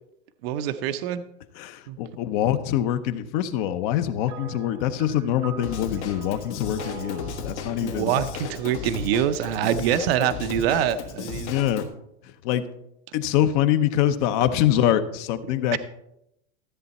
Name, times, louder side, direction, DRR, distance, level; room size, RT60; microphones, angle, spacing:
voice 1, 0.4-1.2 1.9-2.0 7.8-11.5 15.7-15.8, right 10 dB, 60° right, 11 dB, 0.7 m, -25 dB
voice 2, 1.5-8.1 11.4-11.8 12.4-12.7 13.1-15.8, left 11 dB, 45° left, 12 dB, 0.8 m, -24 dB
sound 1, 4.3-9.8, right 7 dB, 15° right, 0.3 m, -44 dB
Drum kit / Drum, 5.6-11.9, left 6 dB, 75° left, 1.9 m, -35 dB
13.5 x 7.9 x 4.1 m, 0.80 s
supercardioid pair, 150°, 34 cm